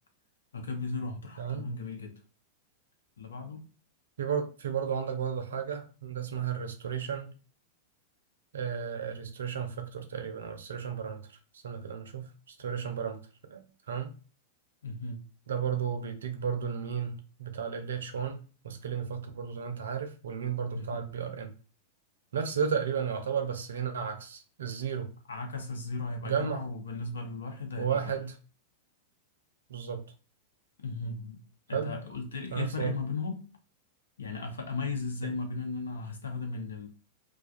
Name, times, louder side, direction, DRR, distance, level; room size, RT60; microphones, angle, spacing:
voice 1, 0.5-2.1 3.2-3.6 14.8-15.2 20.7-21.0 25.3-28.0 30.8-31.4 31.7-33.5 34.2-36.9, left 3 dB, 80° left, 4 dB, 0.6 m, -36 dB
voice 2, 4.2-7.3 8.5-11.4 11.6-13.2 13.5-14.1 15.5-18.4 18.6-21.5 22.3-25.1 26.2-26.6 27.8-28.3 29.7-30.0 31.7-31.9 32.5-33.0 35.2-35.3, right 7 dB, 75° right, 7 dB, 0.5 m, -33 dB
2.3 x 2.2 x 2.4 m, 0.36 s
figure-of-eight pair, 95°, 0 cm